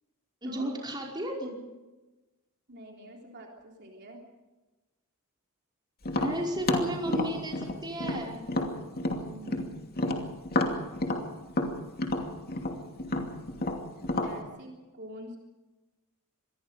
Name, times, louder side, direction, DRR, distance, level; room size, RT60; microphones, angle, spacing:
voice 1, 0.4-1.5 6.2-8.3, right 1 dB, 20° right, -1 dB, 5.2 m, -33 dB
voice 2, 2.7-4.2 9.3-9.8 14.2-15.4, right 1 dB, 50° right, 0 dB, 3.6 m, -46 dB
Tap, 6.0-9.7 10.0-14.4, left 1 dB, 45° left, 2.6 m, -30 dB
26.5 x 21.0 x 5.1 m, 1.1 s
head